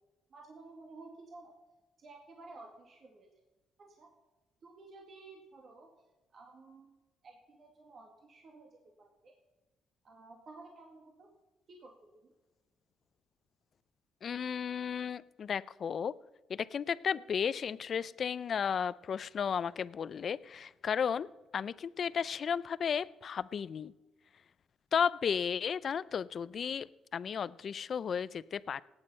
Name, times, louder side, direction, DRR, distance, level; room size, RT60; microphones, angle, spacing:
voice 1, 0.3-1.5 2.0-3.3 3.8-4.1 4.6-5.9 6.3-6.9 7.2-9.3 10.0-11.3 11.7-12.3, right 3 dB, 50° right, 2 dB, 2.0 m, -53 dB
voice 2, 14.2-16.1 16.5-23.9 24.9-26.9 27.1-28.8, left 7 dB, 55° left, 18 dB, 0.5 m, -34 dB
18.0 x 9.0 x 5.5 m, 1.2 s
cardioid pair, 90°, 0 cm